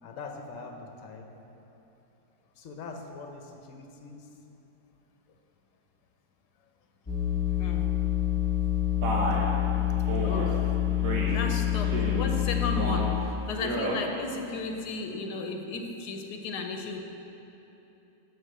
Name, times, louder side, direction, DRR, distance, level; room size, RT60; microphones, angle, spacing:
voice 1, 0.0-1.3 1.7-1.8 2.6-4.3 11.2-11.4, left 4 dB, 60° left, 3 dB, 1.2 m, -43 dB
sound 1, 7.1-13.5, left 12 dB, 15° left, 1.5 m, -27 dB
Male speech man speaking, 9.0-9.5 10.1-10.5 11.0-11.4 11.8-12.3 12.7-13.1 13.5-14.0, right 2 dB, 60° right, 1.7 m, -31 dB
voice 2, 9.9-10.7 11.3-17.0, left 3 dB, 90° left, 4 dB, 1.3 m, -35 dB
11.0 x 4.4 x 6.7 m, 3.0 s
omnidirectional pair, 1.7 m